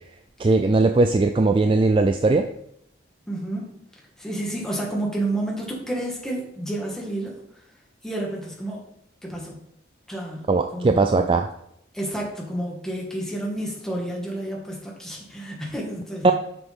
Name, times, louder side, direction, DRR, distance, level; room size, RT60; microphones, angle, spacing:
voice 1, 0.4-2.5 10.5-11.5 16.2-16.3, right 3 dB, 25° right, 7 dB, 0.3 m, -19 dB
voice 2, 3.3-3.8 4.2-7.3 8.0-8.8 9.2-9.6 10.1-10.5 10.7-11.3 11.9-16.3, right 1 dB, 5° left, -3 dB, 1.7 m, -30 dB
7.7 x 6.1 x 3.5 m, 0.74 s
head